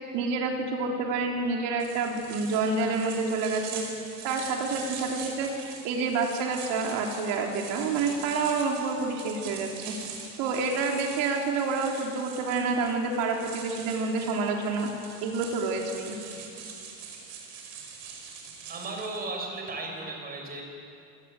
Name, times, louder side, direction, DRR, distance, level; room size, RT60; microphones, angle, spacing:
voice 1, 0.1-3.9 4.2-9.9 10.4-14.9 15.2-16.2, right 4 dB, 80° right, 1 dB, 3.5 m, -28 dB
sound 1, 1.8-19.2, right 6 dB, 55° right, 5.7 m, -43 dB
voice 2, 18.7-20.6, right 3 dB, 25° right, 1 dB, 5.8 m, -35 dB
27.0 x 19.0 x 9.0 m, 2.6 s
cardioid pair, 160°, 34 cm